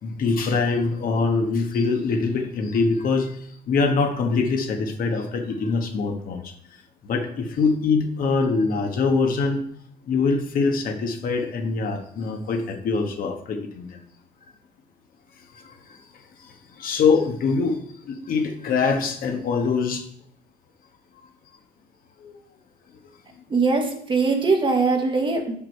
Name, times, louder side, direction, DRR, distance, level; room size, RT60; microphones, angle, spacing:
voice 1, 0.0-3.4 3.7-6.5 7.0-9.7 10.1-14.0 15.5-16.0 16.4-20.1 22.2-22.4, left 4 dB, 60° left, 4 dB, 1.3 m, -24 dB
voice 2, 23.5-25.6, right 4 dB, 30° right, 4 dB, 1.3 m, -21 dB
6.2 x 5.8 x 4.6 m, 0.64 s
cardioid pair, 110°, 17 cm